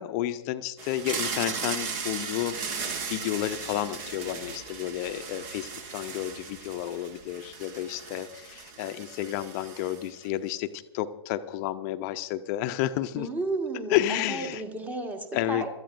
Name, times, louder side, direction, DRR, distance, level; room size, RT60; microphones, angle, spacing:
voice 1, 0.0-13.3 13.9-14.6 15.3-15.7, left 13 dB, 35° left, 11 dB, 0.7 m, -31 dB
sound 1, 0.8-10.2, right 5 dB, 40° right, 1.5 m, -37 dB
voice 2, 13.2-14.0 14.3-15.7, right 2 dB, 10° right, 6 dB, 1.6 m, -32 dB
25.5 x 13.0 x 2.6 m, 1.0 s
figure-of-eight pair, 105°, 14 cm